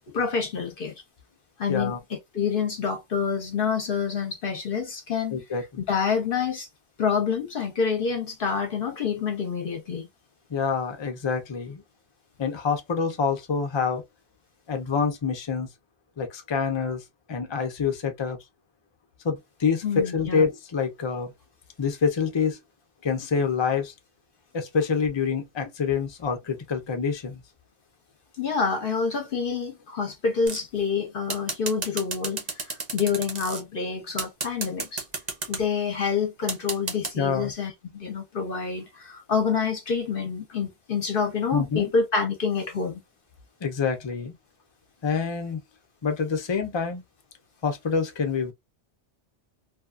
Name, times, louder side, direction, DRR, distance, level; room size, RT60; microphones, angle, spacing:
voice 1, 0.1-0.9 1.6-5.4 5.8-6.7 7.0-10.1 19.8-20.4 28.4-35.0 35.5-43.0, left 5 dB, 55° left, 0.8 m, -27 dB
voice 2, 1.7-2.0 5.3-5.8 10.5-11.8 12.4-14.0 14.7-15.7 16.2-17.0 17.3-18.4 19.2-21.3 21.8-22.6 23.0-23.9 24.5-27.4 37.2-37.5 41.5-41.9 43.6-44.3 45.0-45.6 46.0-47.0 47.6-48.5, left 5 dB, 35° left, 0.4 m, -26 dB
sound 1, 30.5-30.8 31.3-33.6 34.2-35.6 36.5-37.1, right 4 dB, 40° right, 0.8 m, -31 dB
2.7 x 2.3 x 2.3 m
omnidirectional pair, 1.2 m